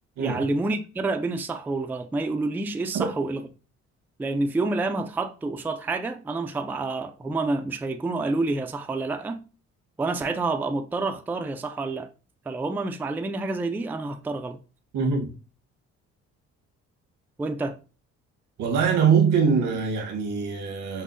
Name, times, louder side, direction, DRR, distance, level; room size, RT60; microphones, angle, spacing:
voice 1, 0.2-3.4 4.2-9.4 10.0-12.1 12.5-14.6 17.4-17.8, right 3 dB, 5° right, 0.3 m, -28 dB
voice 2, 14.9-15.3 18.6-21.0, right 6 dB, 85° right, 1.1 m, -23 dB
5.5 x 2.0 x 2.5 m
cardioid pair, 90°, 30 cm